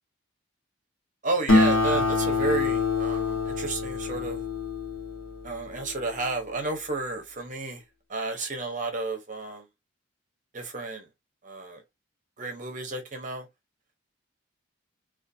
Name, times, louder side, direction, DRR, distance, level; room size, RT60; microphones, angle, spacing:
voice 1, 1.2-4.4 5.4-7.8 8.1-9.6 10.5-11.0 11.4-11.8 12.4-13.5, right 3 dB, 35° right, 0.7 m, -32 dB
Acoustic guitar, 1.5-6.3, left 3 dB, 85° left, 0.8 m, -26 dB
2.4 x 2.3 x 2.6 m
head